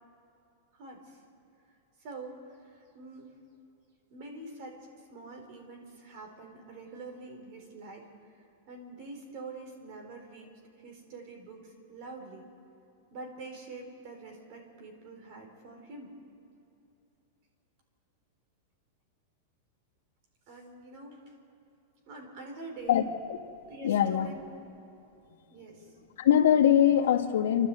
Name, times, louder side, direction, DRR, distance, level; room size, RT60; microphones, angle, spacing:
voice 1, 0.7-1.2 2.0-3.4 4.1-8.1 8.7-12.5 13.1-16.2 20.5-21.3 22.1-23.0 23.7-24.5 25.5-25.9, right 3 dB, 40° right, 2 dB, 4.1 m, -46 dB
voice 2, 23.8-24.3 26.2-27.7, left 10 dB, 85° left, 4 dB, 1.8 m, -22 dB
29.0 x 12.5 x 7.8 m, 2.9 s
supercardioid pair, 170°, 0 cm